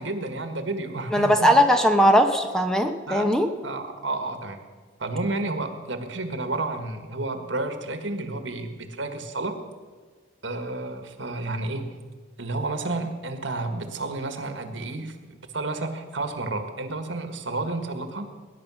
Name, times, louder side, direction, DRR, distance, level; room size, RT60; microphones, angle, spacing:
voice 1, 0.0-1.5 3.1-3.3 3.6-4.6 5.0-9.6 10.4-11.9 12.4-18.3, right 2 dB, 75° right, 7 dB, 1.7 m, -31 dB
voice 2, 1.1-3.5, equal, 5° left, 5 dB, 1.0 m, -19 dB
20.0 x 10.5 x 6.3 m, 1.5 s
head